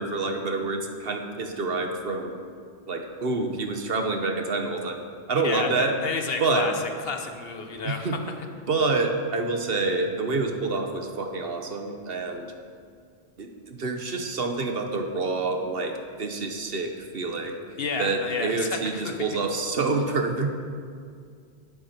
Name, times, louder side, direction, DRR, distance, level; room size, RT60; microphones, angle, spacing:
voice 1, 0.0-2.4 2.9-5.0 5.3-5.9 6.4-6.7 7.8-8.2 8.7-12.5 13.4-17.6 18.0-20.5, right 3 dB, 60° right, 4 dB, 1.2 m, -27 dB
voice 2, 5.4-6.7 7.0-8.2 17.8-19.1, left 4 dB, 65° left, 5 dB, 1.1 m, -30 dB
11.0 x 10.5 x 4.4 m, 2.1 s
omnidirectional pair, 1.1 m